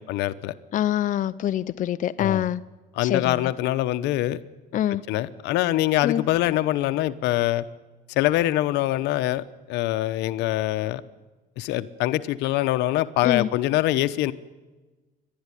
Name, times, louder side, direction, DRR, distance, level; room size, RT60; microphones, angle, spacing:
voice 1, 0.1-0.5 2.2-2.4 3.0-4.4 5.1-7.6 8.1-11.0 11.6-14.3, left 15 dB, 90° left, 13 dB, 1.0 m, -24 dB
voice 2, 0.7-2.6 3.0-3.5 4.7-5.0 6.0-6.2 13.2-13.5, left 11 dB, 50° left, 12 dB, 0.6 m, -25 dB
29.5 x 12.0 x 9.9 m, 1.2 s
cardioid pair, 110°, 17 cm